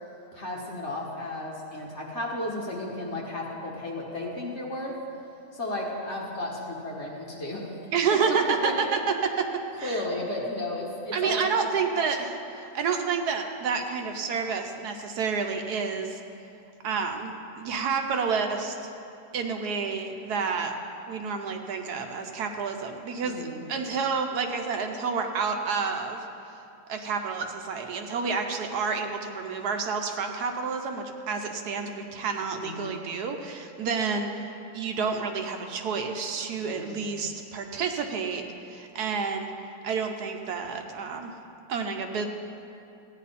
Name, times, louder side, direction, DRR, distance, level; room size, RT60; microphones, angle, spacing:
voice 1, 0.3-5.0 5.5-7.7 8.3-8.9 9.8-11.7 23.2-23.7 32.5-33.0 36.6-37.1, left 1 dB, 40° left, -3 dB, 1.9 m, -34 dB
voice 2, 7.9-9.5 9.8-10.0 11.1-16.2 16.8-18.9 19.3-20.7 21.1-26.2 26.9-39.5 39.8-41.3 41.7-42.2, right 5 dB, 75° right, 4 dB, 1.3 m, -29 dB
15.5 x 9.8 x 4.2 m, 2.7 s
omnidirectional pair, 1.8 m